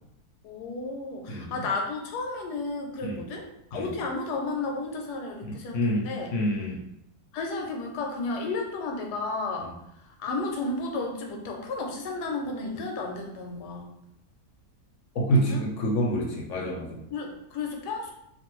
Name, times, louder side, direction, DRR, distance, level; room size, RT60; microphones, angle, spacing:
voice 1, 0.4-6.3 7.3-9.7 10.0-13.9 15.3-15.6 17.1-18.1, left 3 dB, 85° left, 2 dB, 1.2 m, -33 dB
voice 2, 5.4-6.8 15.2-17.0, equal, 60° left, -1 dB, 0.9 m, -27 dB
2.6 x 2.5 x 3.0 m, 0.81 s
omnidirectional pair, 1.7 m